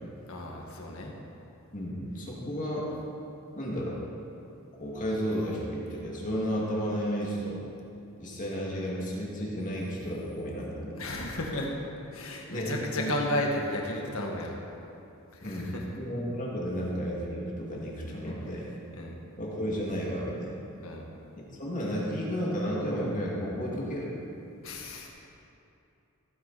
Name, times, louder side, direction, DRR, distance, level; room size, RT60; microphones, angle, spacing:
voice 1, 0.3-1.1 10.9-11.8 12.1-14.6 15.3-15.8 18.2-19.1 20.8-21.1 24.6-25.1, left 1 dB, 70° left, 0 dB, 1.9 m, -34 dB
voice 2, 1.7-2.9 3.5-4.0 4.8-7.6 8.2-11.0 12.5-13.1 15.4-18.6 19.4-20.6 21.5-24.1, equal, 35° left, -5 dB, 2.4 m, -32 dB
16.0 x 9.8 x 4.3 m, 2.8 s
head